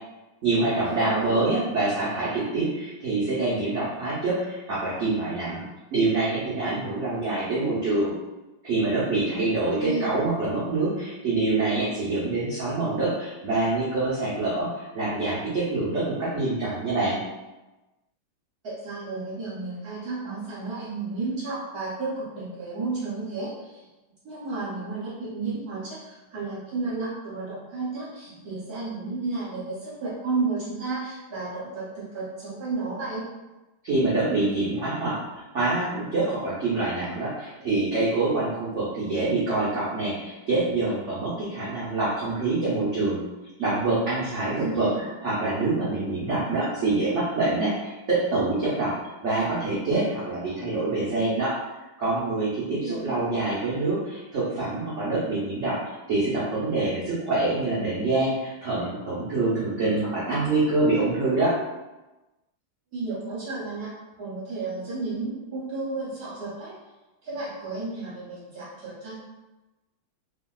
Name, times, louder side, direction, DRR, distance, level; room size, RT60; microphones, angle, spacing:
voice 1, 0.4-5.6 5.9-8.1 8.6-17.2 33.8-43.2 43.6-48.9 49.2-51.5 52.0-55.8 56.1-61.5, right 2 dB, 85° right, -9 dB, 0.6 m, -26 dB
voice 2, 0.9-1.4 9.8-10.1 18.6-23.8 24.2-33.2 44.4-45.0 52.8-53.1 62.9-63.9 64.2-66.7 67.2-69.2, right 3 dB, 60° right, -8 dB, 1.1 m, -32 dB
2.8 x 2.7 x 2.3 m, 1.1 s
omnidirectional pair, 2.2 m